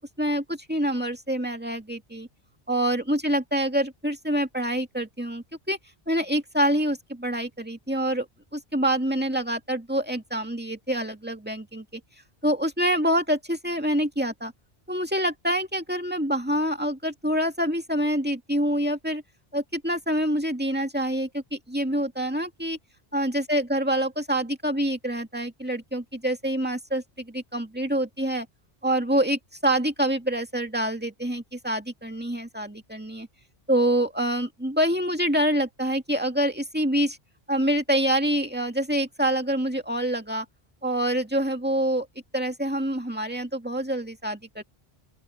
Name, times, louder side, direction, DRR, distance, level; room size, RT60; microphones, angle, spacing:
voice 1, 0.0-2.3 2.7-5.8 6.1-8.3 8.5-12.0 12.4-14.5 14.9-19.2 19.5-22.8 23.1-28.5 28.8-33.3 33.7-37.2 37.5-40.5 40.8-42.1 42.3-44.6, right 1 dB, 10° right, 2.2 m, -26 dB
open air
omnidirectional pair, 1.0 m